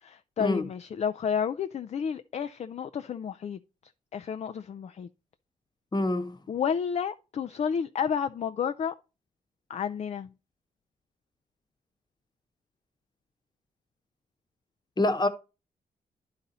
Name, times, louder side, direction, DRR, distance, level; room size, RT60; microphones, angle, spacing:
voice 1, 0.0-3.6 4.1-5.1 6.5-8.9 9.7-10.3, left 7 dB, 45° left, 0.4 m, -31 dB
voice 2, 5.9-6.4 15.0-15.3, left 1 dB, 25° left, 1.0 m, -26 dB
10.5 x 4.0 x 4.2 m
cardioid pair, 85°, 16 cm